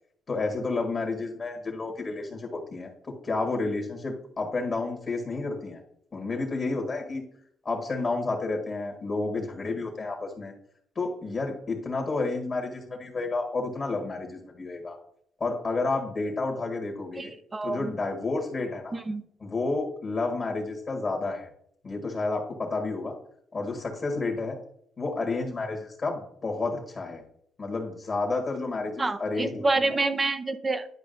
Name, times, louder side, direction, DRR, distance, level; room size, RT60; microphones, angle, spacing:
voice 1, 0.3-5.8 6.1-7.2 7.6-10.5 10.9-15.0 15.4-17.3 17.6-19.0 19.4-21.5 21.8-23.1 23.5-24.6 25.0-27.2 27.6-30.0, left 3 dB, 40° left, 1 dB, 1.5 m, -30 dB
voice 2, 17.2-17.9 18.9-19.2 29.0-30.9, right 3 dB, 25° right, 11 dB, 0.7 m, -28 dB
10.5 x 4.9 x 2.6 m, 0.68 s
cardioid pair, 90°, 0 cm